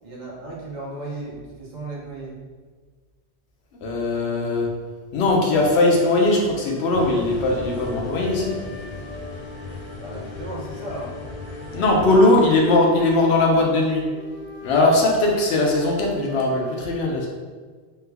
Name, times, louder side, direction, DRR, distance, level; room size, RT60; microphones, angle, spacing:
voice 1, 0.0-2.4 10.0-11.1, right 2 dB, 45° right, -5 dB, 0.9 m, -35 dB
voice 2, 3.8-4.7 5.1-8.6 11.7-14.0 14.6-17.3, left 2 dB, 80° left, -1 dB, 0.9 m, -19 dB
sound 1, 6.5-16.6, left 2 dB, 35° left, 0.8 m, -43 dB
sound 2, 6.9-12.0, left 3 dB, 55° left, 0.3 m, -37 dB
3.3 x 2.2 x 3.3 m, 1.5 s
omnidirectional pair, 1.1 m